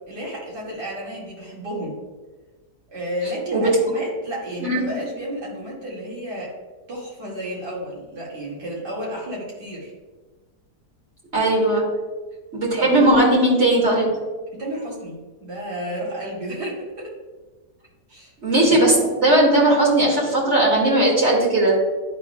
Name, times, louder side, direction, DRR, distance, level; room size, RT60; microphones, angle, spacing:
voice 1, 0.1-2.0 2.9-6.5 6.9-9.9 12.8-13.0 14.5-17.1 18.1-18.3, equal, 80° right, -6 dB, 2.9 m, -32 dB
voice 2, 11.3-11.9 12.5-14.1 18.4-21.8, right 1 dB, 40° right, -5 dB, 2.5 m, -18 dB
12.5 x 4.2 x 2.3 m, 1.3 s
omnidirectional pair, 1.8 m